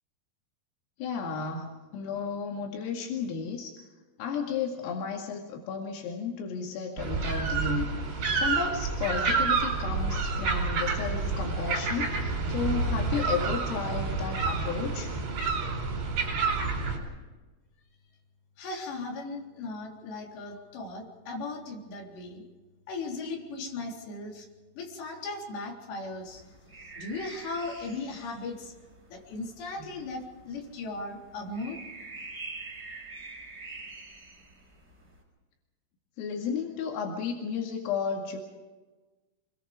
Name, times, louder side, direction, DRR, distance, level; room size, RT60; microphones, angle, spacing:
voice 1, 1.0-3.7 4.2-15.1 29.8-29.9 36.2-38.4, left 5 dB, 85° left, 1 dB, 4.8 m, -33 dB
sound 1, 7.0-17.0, right 4 dB, 60° right, 6.3 m, -29 dB
voice 2, 18.6-22.4 22.9-24.5 24.8-26.4 27.0-28.7 29.1-31.8, left 3 dB, 60° left, 0 dB, 5.6 m, -37 dB
sound 2, 26.2-35.2, right 3 dB, 20° right, 5.7 m, -46 dB
25.5 x 22.5 x 5.0 m, 1.2 s
omnidirectional pair, 5.9 m